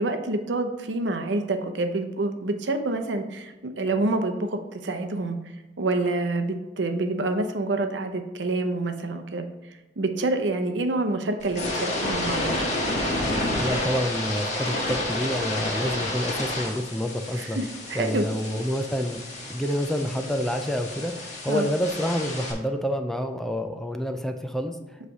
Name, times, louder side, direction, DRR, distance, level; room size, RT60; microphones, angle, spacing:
voice 1, 0.0-5.4 5.8-9.5 10.0-12.6 17.3-18.3 21.5-21.7, right 2 dB, 85° right, 6 dB, 0.7 m, -27 dB
sound 1, 11.4-22.5, left 1 dB, 40° left, 1.6 m, -30 dB
voice 2, 13.5-17.6 17.9-19.2 19.5-25.0, equal, ahead, 5 dB, 0.4 m, -28 dB
7.8 x 3.3 x 4.8 m, 1.1 s
head